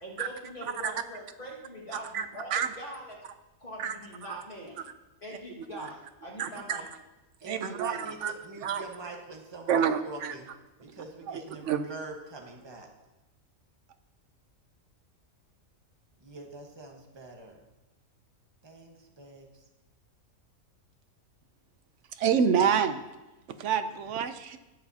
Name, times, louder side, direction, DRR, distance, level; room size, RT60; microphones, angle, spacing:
voice 1, 0.0-3.2 3.6-4.8 5.2-6.8, equal, 40° left, -5 dB, 2.0 m, -43 dB
voice 2, 6.4-6.8 7.4-8.3 8.6-8.8 9.7-10.3 11.3-11.9 22.1-23.0 23.6-24.6, right 7 dB, 65° right, 10 dB, 0.9 m, -28 dB
voice 3, 7.4-10.5 10.8-12.9 16.2-17.6 18.6-19.6, right 2 dB, 20° right, 1 dB, 1.2 m, -44 dB
18.5 x 7.1 x 2.8 m, 1.0 s
omnidirectional pair, 1.4 m